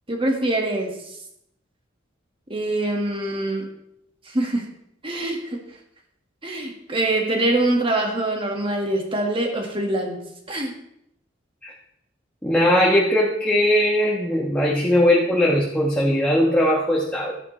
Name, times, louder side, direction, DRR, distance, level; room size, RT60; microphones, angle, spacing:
voice 1, 0.1-0.9 2.5-3.7 4.3-4.7 5.0-5.6 6.4-10.2 10.5-10.7, right 1 dB, 30° right, 2 dB, 1.8 m, -24 dB
voice 2, 12.4-17.3, left 1 dB, 5° left, -4 dB, 1.3 m, -19 dB
13.5 x 10.5 x 3.3 m, 0.77 s
head